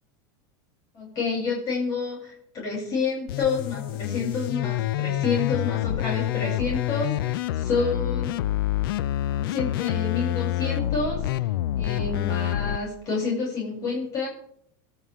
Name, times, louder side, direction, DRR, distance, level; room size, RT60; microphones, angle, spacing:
voice 1, 0.9-8.4 9.4-11.5 11.8-14.3, left 4 dB, 35° left, -4 dB, 7.9 m, -29 dB
sound 1, 3.3-12.8, left 13 dB, 85° left, 0.6 m, -27 dB
26.0 x 12.5 x 3.7 m, 0.69 s
supercardioid pair, 180°, 12 cm